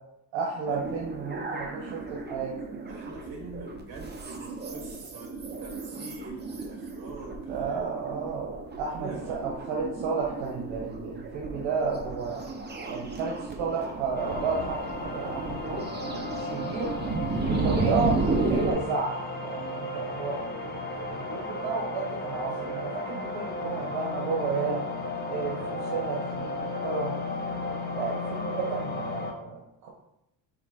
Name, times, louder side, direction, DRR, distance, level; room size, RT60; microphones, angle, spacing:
voice 1, 0.3-2.5 7.5-8.5 8.8-12.4 12.9-15.9 16.3-16.9 17.4-20.7 21.1-24.8 25.3-27.1 27.9-29.9, right 4 dB, 75° right, -2 dB, 1.3 m, -32 dB
sound 1, 0.7-18.7, right 3 dB, 20° right, 0.8 m, -33 dB
voice 2, 2.9-7.8 9.0-9.4, right 2 dB, 55° right, 0 dB, 2.2 m, -44 dB
sound 2, 14.1-29.3, left 2 dB, 20° left, 1.0 m, -34 dB
5.8 x 4.2 x 4.3 m, 0.89 s
cardioid pair, 130°, 46 cm